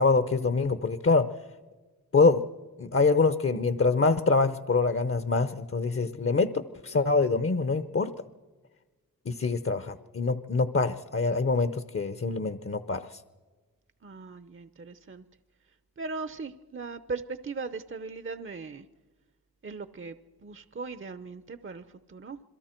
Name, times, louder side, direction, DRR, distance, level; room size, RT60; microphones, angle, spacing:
voice 1, 0.0-1.3 2.1-2.4 2.8-8.1 9.3-13.2, left 3 dB, 40° left, 11 dB, 0.8 m, -25 dB
voice 2, 14.0-15.3 16.0-18.9 19.6-20.2 20.4-22.4, right 4 dB, 35° right, 12 dB, 0.7 m, -38 dB
27.5 x 22.0 x 4.5 m, 1.3 s
wide cardioid pair, 65°, 36 cm